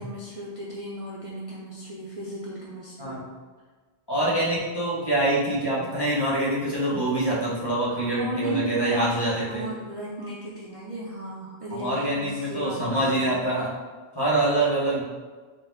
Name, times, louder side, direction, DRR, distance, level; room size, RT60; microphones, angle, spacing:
voice 1, 0.0-3.2 7.9-9.2 9.5-13.3, right 1 dB, 40° right, -6 dB, 0.5 m, -36 dB
voice 2, 3.0-3.3 4.1-9.7 11.7-13.7 14.1-15.0, right 1 dB, 25° left, -7 dB, 1.0 m, -25 dB
4.1 x 2.2 x 3.9 m, 1.4 s
omnidirectional pair, 1.1 m